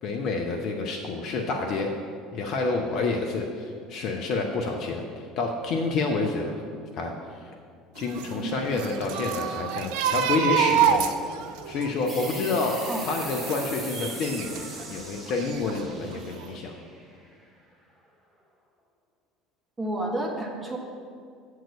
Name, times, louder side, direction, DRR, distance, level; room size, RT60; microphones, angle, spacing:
voice 1, 0.0-1.9 2.3-6.6 7.0-7.1 7.9-11.0 11.7-16.7, left 3 dB, 50° left, 2 dB, 0.6 m, -28 dB
sound 1, 8.0-14.9 15.3-16.2 16.4-16.6, right 8 dB, 60° right, 0.4 m, -28 dB
sound 2, 12.1-17.3, equal, ahead, 2.1 m, -40 dB
voice 2, 19.8-20.8, right 1 dB, 20° right, 0 dB, 1.3 m, -30 dB
7.5 x 4.7 x 6.8 m, 2.3 s
figure-of-eight pair, 65°, 0 cm